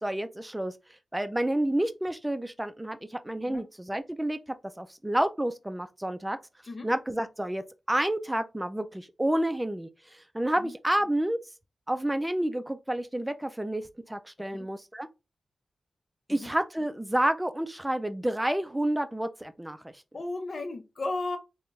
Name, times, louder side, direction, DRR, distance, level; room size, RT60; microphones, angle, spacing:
voice 1, 0.0-0.7 1.1-4.4 4.8-6.4 6.8-11.4 11.9-15.1 16.3-19.9, right 1 dB, 15° right, 0.5 m, -29 dB
voice 2, 20.1-21.4, left 2 dB, 60° left, 0.7 m, -35 dB
3.7 x 2.2 x 3.1 m
cardioid pair, 55°, 0 cm